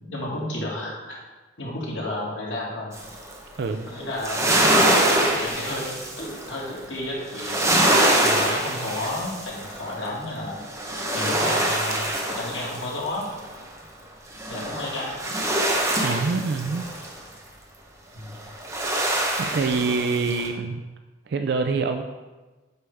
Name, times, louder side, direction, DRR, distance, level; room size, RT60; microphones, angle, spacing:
voice 1, 0.0-1.2 1.6-2.9 3.9-4.5 5.1-5.9 6.2-7.7 8.2-10.6 11.1-13.3 14.5-15.2 18.1-18.4 19.9-20.3, left 1 dB, 90° left, -4 dB, 2.0 m, -32 dB
sound 1, 2.9-3.3 3.9-6.7 7.3-10.1 10.5-13.5 14.4-17.1 18.4-20.5, right 1 dB, 15° right, 0.9 m, -24 dB
voice 2, 3.6-3.9 16.0-16.9 19.4-20.8 21.3-22.0, right 4 dB, 60° right, 6 dB, 0.4 m, -25 dB
8.0 x 5.3 x 3.5 m, 1.2 s
head